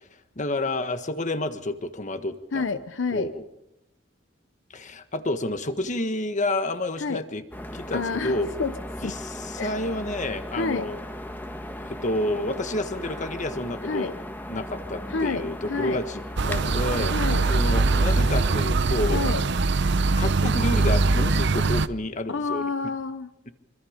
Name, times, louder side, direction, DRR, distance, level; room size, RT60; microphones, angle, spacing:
voice 1, 0.3-2.8 3.1-3.4 4.7-7.4 7.7-8.5 9.0-11.0 11.7-14.1 14.5-17.1 17.5-19.2 20.2-22.7, left 1 dB, 40° left, 9 dB, 1.6 m, -29 dB
voice 2, 2.5-3.3 7.0-7.2 7.9-8.7 9.0-9.1 9.6-9.7 10.5-10.9 13.8-14.1 15.1-16.0 17.1-17.5 19.1-19.4 22.3-23.3, left 4 dB, 75° left, 11 dB, 0.8 m, -29 dB
sound 1, 7.5-18.6, left 1 dB, 10° left, 1.5 m, -37 dB
sound 2, 16.4-21.9, right 3 dB, 65° right, 0.8 m, -22 dB
25.5 x 25.0 x 5.2 m, 0.92 s
head